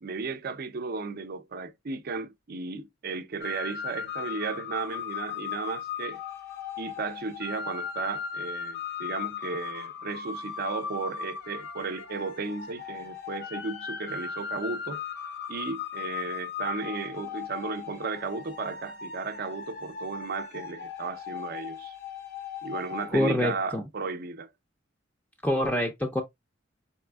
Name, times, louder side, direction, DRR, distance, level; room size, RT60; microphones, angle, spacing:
voice 1, 0.0-6.2 6.8-15.0 15.5-21.9 22.6-24.5, right 4 dB, 50° right, 0.5 m, -34 dB
sound 1, 3.4-23.1, left 7 dB, 55° left, 0.6 m, -37 dB
voice 2, 23.1-23.8 25.4-26.2, left 1 dB, 5° left, 0.5 m, -26 dB
4.2 x 3.4 x 2.2 m
head